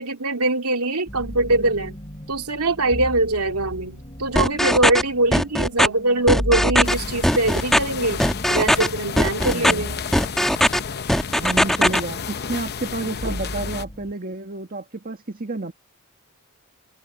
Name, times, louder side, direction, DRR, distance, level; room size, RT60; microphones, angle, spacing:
voice 1, 0.0-2.0 2.3-8.2 8.5-10.0 13.2-13.3, right 2 dB, 85° right, 2.8 m, -22 dB
sound 1, 1.1-14.1, equal, 25° left, 2.7 m, -36 dB
sound 2, 4.4-5.0 5.3-5.9 6.3-6.9 7.2-7.8 8.2-8.9 9.2-9.7 10.1-10.8 11.1-12.0, equal, ahead, 1.3 m, -18 dB
sound 3, 6.8-13.8, left 6 dB, 45° left, 0.8 m, -32 dB
voice 2, 9.5-9.9 11.4-15.7, right 2 dB, 40° right, 1.6 m, -30 dB
head